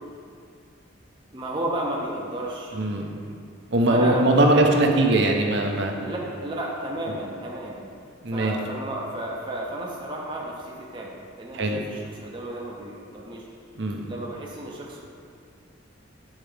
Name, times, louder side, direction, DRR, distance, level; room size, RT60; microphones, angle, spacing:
voice 1, 1.3-3.3 3.9-5.1 6.0-7.9 8.3-13.4 14.1-15.0, right 1 dB, 25° right, -3 dB, 0.6 m, -33 dB
voice 2, 2.7-3.1 3.7-5.9 8.2-8.6 11.5-11.8 13.8-14.1, right 2 dB, 60° right, 2 dB, 0.7 m, -21 dB
8.9 x 4.4 x 3.3 m, 2.2 s
head